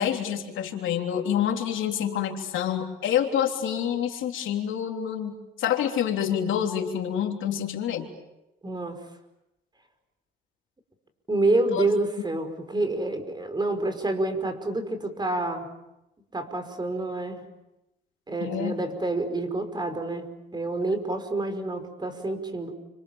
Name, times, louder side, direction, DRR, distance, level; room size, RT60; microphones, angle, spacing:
voice 1, 0.0-8.1 11.7-11.9 18.4-18.7, left 9 dB, 80° left, 3 dB, 3.4 m, -27 dB
voice 2, 8.6-9.0 11.3-15.7 16.3-17.4 18.3-22.7, right 2 dB, 20° right, 8 dB, 5.3 m, -28 dB
30.0 x 26.5 x 7.3 m, 0.92 s
cardioid pair, 90°, 20 cm